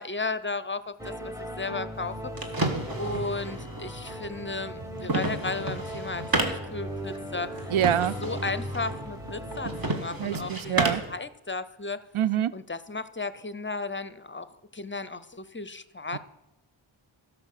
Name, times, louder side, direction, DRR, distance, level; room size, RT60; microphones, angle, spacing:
voice 1, 0.0-2.3 3.0-7.7 8.2-12.0 12.5-14.5 14.7-16.2, left 3 dB, 25° left, 15 dB, 0.6 m, -34 dB
sound 1, 1.0-9.9, equal, 5° right, 1.4 m, -38 dB
sound 2, 1.9-11.2, right 2 dB, 45° right, 1.8 m, -33 dB
voice 2, 7.7-8.1 10.2-11.0 12.1-12.5 16.1-16.2, right 10 dB, 75° right, 17 dB, 0.6 m, -25 dB
12.5 x 6.2 x 6.6 m, 0.92 s
cardioid pair, 40°, 50 cm